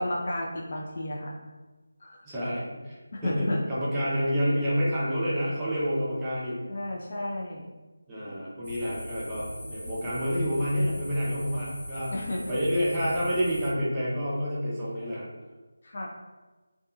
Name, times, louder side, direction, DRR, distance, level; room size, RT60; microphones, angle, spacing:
voice 1, 0.0-1.4 2.0-2.3 3.1-3.6 4.0-4.1 6.7-7.7 12.1-12.6 15.8-16.1, left 1 dB, 45° left, -2 dB, 0.4 m, -32 dB
voice 2, 2.3-6.6 8.1-12.1 12.5-15.3, equal, 10° right, -10 dB, 0.6 m, -28 dB
sound 1, 8.6-13.7, equal, 80° left, 0.9 m, -41 dB
2.6 x 2.3 x 2.3 m, 1.3 s
figure-of-eight pair, 165°, 0 cm